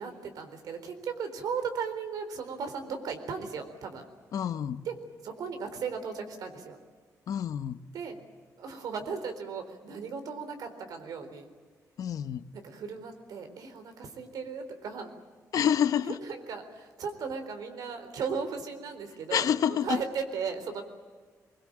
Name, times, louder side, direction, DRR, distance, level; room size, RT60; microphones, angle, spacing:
voice 1, 0.0-4.1 4.9-5.0 5.2-6.8 7.9-8.2 8.6-11.5 12.5-15.1 16.3-19.5 19.8-20.8, right 5 dB, 80° right, 7 dB, 4.0 m, -36 dB
voice 2, 4.3-4.8 7.3-7.8 12.0-12.4 15.5-16.2 19.3-20.0, left 9 dB, 70° left, 12 dB, 1.0 m, -28 dB
23.0 x 22.5 x 8.9 m, 1.5 s
cardioid pair, 125°, 6 cm